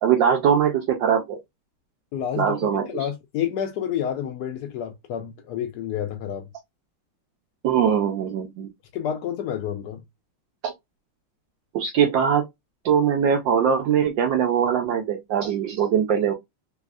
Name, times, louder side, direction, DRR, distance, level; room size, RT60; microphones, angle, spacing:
voice 1, 0.0-1.4 2.4-2.9 7.6-8.7 10.6-10.7 11.7-12.4 12.8-16.3, right 8 dB, 75° right, 1.2 m, -21 dB
voice 2, 2.1-6.5 8.9-10.0, left 9 dB, 80° left, 0.8 m, -29 dB
3.5 x 3.1 x 2.3 m
omnidirectional pair, 2.3 m